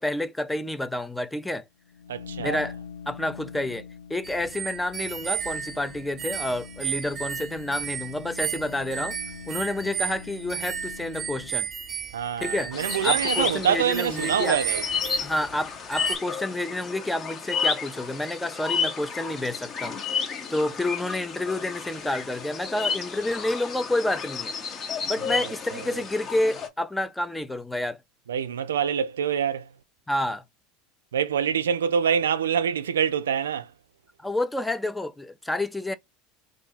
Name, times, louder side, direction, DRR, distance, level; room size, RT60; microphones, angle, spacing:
voice 1, 0.0-1.6 2.4-2.8 3.1-9.2 9.5-11.7 12.4-12.7 13.0-14.6 15.2-20.0 20.5-24.5 25.1-28.0 30.1-30.4 34.2-35.9, left 1 dB, 10° left, 0.5 m, -29 dB
sound 1, 1.8-11.7, left 6 dB, 85° left, 0.7 m, -43 dB
voice 2, 2.1-2.7 12.1-14.8 25.3-26.0 28.3-29.7 31.1-33.7, right 8 dB, 80° right, 0.3 m, -26 dB
sound 2, 4.2-15.6 15.9-16.2, right 8 dB, 30° right, 0.9 m, -34 dB
sound 3, 12.7-26.7, left 6 dB, 35° left, 1.0 m, -32 dB
2.6 x 2.6 x 3.9 m
hypercardioid pair, 80°, 0 cm